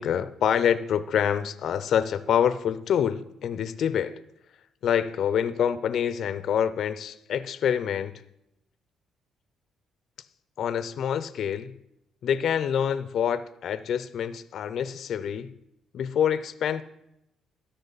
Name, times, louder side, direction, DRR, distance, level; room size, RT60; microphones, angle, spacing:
voice 1, 0.0-4.2 4.8-8.2 10.6-11.7 12.2-15.5 15.9-16.8, left 8 dB, 70° left, 0.5 m, -26 dB
13.5 x 10.5 x 4.0 m
cardioid pair, 90°, 0 cm